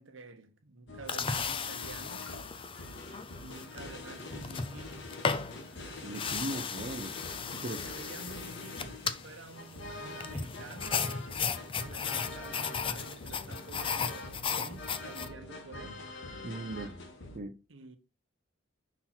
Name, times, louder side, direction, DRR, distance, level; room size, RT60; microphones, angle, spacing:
voice 1, 0.0-2.3 3.4-5.2 7.7-11.1 11.8-16.0 17.7-18.0, right 3 dB, 65° right, 1.0 m, -49 dB
sound 1, 0.9-17.4, left 2 dB, 60° left, 1.3 m, -45 dB
sound 2, 1.1-15.3, left 6 dB, 25° left, 0.4 m, -36 dB
voice 2, 6.0-7.1 7.5-7.8 16.4-17.0 17.3-17.6, right 2 dB, 40° right, 0.6 m, -38 dB
5.7 x 4.4 x 3.9 m
head